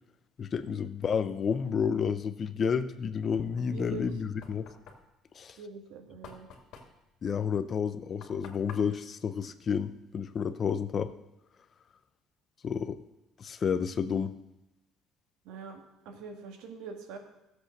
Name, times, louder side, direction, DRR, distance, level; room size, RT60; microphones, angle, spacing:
voice 1, 0.4-4.7 5.3-5.6 7.2-11.1 12.6-13.0 13.4-14.3, left 6 dB, 30° left, 12 dB, 0.6 m, -30 dB
voice 2, 3.7-4.1 5.6-6.5 15.5-15.8 16.1-17.2, right 5 dB, 75° right, 4 dB, 2.2 m, -43 dB
Knock, 3.9-10.3, left 6 dB, 55° left, 2.2 m, -52 dB
14.5 x 8.0 x 6.6 m, 0.95 s
cardioid pair, 170°, 0 cm